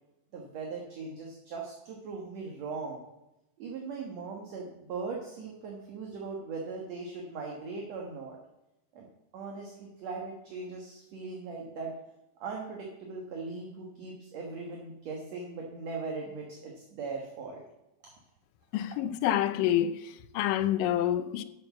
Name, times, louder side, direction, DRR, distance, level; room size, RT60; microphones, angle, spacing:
voice 1, 0.3-3.0 3.6-8.4 8.9-9.1 9.3-11.9 12.4-17.6, right 4 dB, 55° right, 2.2 m, -39 dB
voice 2, 18.7-21.4, left 11 dB, 80° left, 2.0 m, -28 dB
12.5 x 6.5 x 5.9 m
omnidirectional pair, 4.2 m